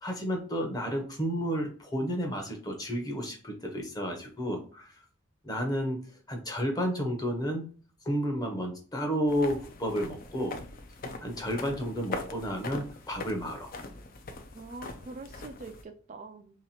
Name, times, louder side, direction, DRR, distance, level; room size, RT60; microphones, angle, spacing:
voice 1, 0.0-4.9 5.4-7.7 8.0-10.6 11.2-13.7, equal, 20° left, 3 dB, 0.8 m, -31 dB
sound 1, 9.3-15.8, left 2 dB, 45° left, 0.5 m, -42 dB
voice 2, 14.5-16.6, right 3 dB, 35° right, 5 dB, 0.3 m, -44 dB
3.1 x 2.9 x 4.1 m, 0.41 s
head